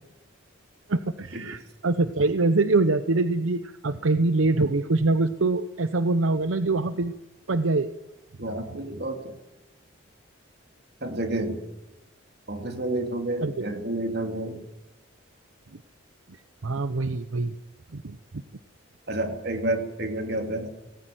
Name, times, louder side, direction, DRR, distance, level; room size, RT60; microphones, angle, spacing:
voice 1, 0.9-7.1 7.5-7.9 13.4-13.5 16.6-17.5 17.9-18.2, right 3 dB, 75° right, 11 dB, 0.8 m, -24 dB
voice 2, 8.4-9.3 11.0-11.6 12.5-14.6 19.1-20.7, right 1 dB, 50° right, 4 dB, 2.9 m, -30 dB
18.5 x 16.5 x 9.2 m, 0.97 s
head